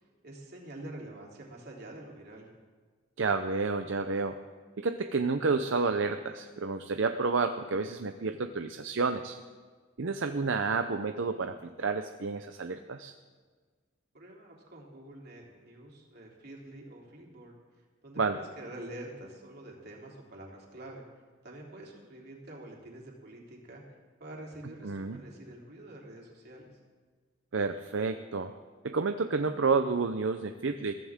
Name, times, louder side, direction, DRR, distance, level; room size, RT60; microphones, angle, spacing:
voice 1, 0.2-2.5 14.1-17.5 18.0-21.0 21.4-23.8 24.2-26.7, right 1 dB, 55° right, -2 dB, 3.2 m, -46 dB
voice 2, 3.2-4.4 4.8-9.4 10.0-13.1 18.2-18.4 24.8-25.2 27.5-28.5 28.8-30.9, right 4 dB, 75° right, 7 dB, 0.6 m, -30 dB
22.0 x 15.0 x 3.6 m, 1.5 s
head